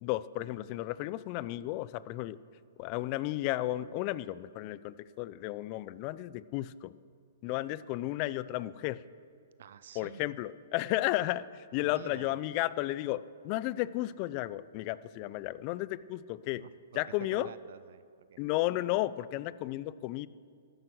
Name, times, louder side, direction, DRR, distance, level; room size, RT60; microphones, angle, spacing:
voice 1, 0.0-2.4 2.8-7.0 7.4-9.0 9.9-16.7 16.9-17.5 18.4-20.3, left 16 dB, 35° left, 18 dB, 0.5 m, -33 dB
voice 2, 9.6-10.3 11.8-12.4 16.6-17.0 17.3-18.4, right 9 dB, 65° right, 15 dB, 0.5 m, -49 dB
13.5 x 11.0 x 6.4 m, 2.3 s
hypercardioid pair, 140°, 0 cm